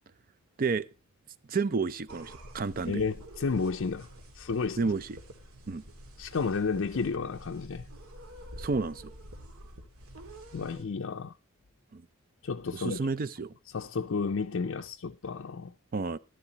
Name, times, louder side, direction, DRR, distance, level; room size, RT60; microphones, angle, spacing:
voice 1, 1.5-3.0 4.8-5.2 5.7-5.8 8.6-9.1 11.9-12.1 12.7-13.5 15.9-16.2, right 4 dB, 40° right, 0.5 m, -30 dB
sound 1, 2.1-10.8, equal, 70° right, 2.1 m, -48 dB
voice 2, 2.9-4.1 4.3-4.9 6.2-7.9 10.5-11.3 12.4-13.1 13.7-15.7, left 4 dB, 55° left, 0.5 m, -32 dB
13.5 x 11.0 x 2.9 m
head